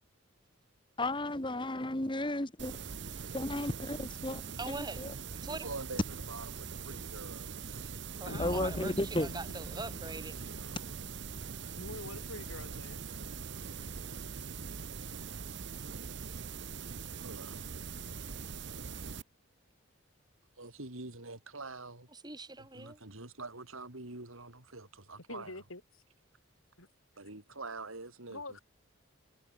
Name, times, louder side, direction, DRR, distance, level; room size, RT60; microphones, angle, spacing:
voice 1, 1.0-2.8 3.3-5.1 8.4-9.3, left 1 dB, 25° left, 1.6 m, -34 dB
sound 1, 2.6-19.2, right 5 dB, 55° right, 0.8 m, -42 dB
voice 2, 4.6-5.0 5.4-5.7 8.2-10.4 22.1-23.0, right 3 dB, 20° right, 4.0 m, -42 dB
voice 3, 5.5-8.0 10.3-10.9 17.2-17.6 20.6-22.1 22.6-25.6 27.2-28.6, right 3 dB, 75° right, 3.8 m, -46 dB
sound 2, 8.3-11.4, left 1 dB, 50° left, 1.6 m, -44 dB
voice 4, 11.8-13.0 25.3-25.8 26.8-26.9 28.3-28.6, left 2 dB, 75° left, 5.0 m, -45 dB
head